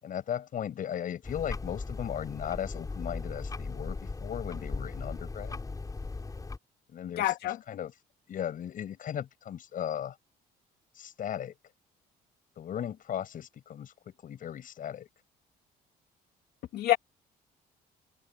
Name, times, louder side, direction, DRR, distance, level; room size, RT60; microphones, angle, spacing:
voice 1, 0.0-5.6 6.9-7.9 8.3-10.2 10.9-11.5 12.6-15.1, left 9 dB, 55° left, 6.8 m, -37 dB
sound 1, 1.2-6.6, left 3 dB, 20° left, 7.2 m, -38 dB
voice 2, 7.2-7.6 16.7-17.0, left 14 dB, 70° left, 2.2 m, -26 dB
open air
cardioid pair, 110°, 17 cm